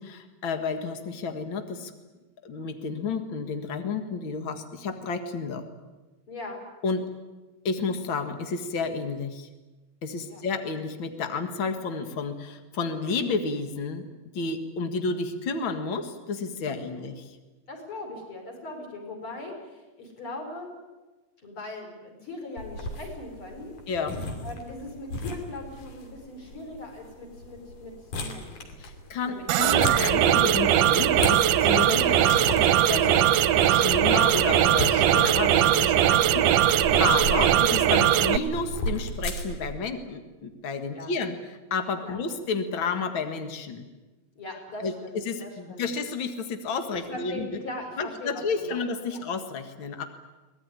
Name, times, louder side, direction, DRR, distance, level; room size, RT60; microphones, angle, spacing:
voice 1, 0.0-1.9 2.4-5.7 6.8-7.0 7.6-9.5 10.0-14.1 14.3-17.4 23.9-24.2 28.8-33.3 33.6-43.9 44.8-44.9 45.2-47.6 48.0-50.0, left 4 dB, 85° left, 7 dB, 1.1 m, -31 dB
voice 2, 6.3-6.6 10.3-10.4 16.6-17.1 17.7-20.7 21.4-23.7 24.4-28.7 29.2-30.0 40.9-41.1 42.0-42.2 44.4-45.9 46.9-49.2, left 2 dB, 30° left, 2 dB, 5.4 m, -40 dB
Wood chips, 22.6-39.7, left 1 dB, 50° left, 3.9 m, -37 dB
sound 1, 29.5-38.4, right 11 dB, 75° right, 2.4 m, -20 dB
23.5 x 19.0 x 9.8 m, 1.2 s
omnidirectional pair, 5.0 m